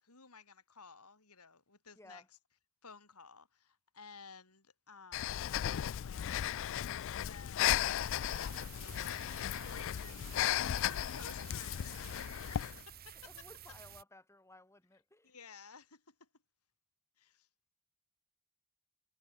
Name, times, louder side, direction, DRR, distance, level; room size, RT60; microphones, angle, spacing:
voice 1, 0.0-2.2 2.8-5.4 5.7-6.9 7.2-7.9 8.2-12.6 12.9-13.4 15.2-16.3 17.2-17.5, left 5 dB, 85° left, 4.9 m, -55 dB
voice 2, 2.0-2.3 13.2-15.3, left 2 dB, 10° left, 5.8 m, -58 dB
Breathing, 5.1-12.8, left 11 dB, 60° left, 0.3 m, -35 dB
sound 1, 8.0-14.0, right 9 dB, 45° right, 1.8 m, -53 dB
head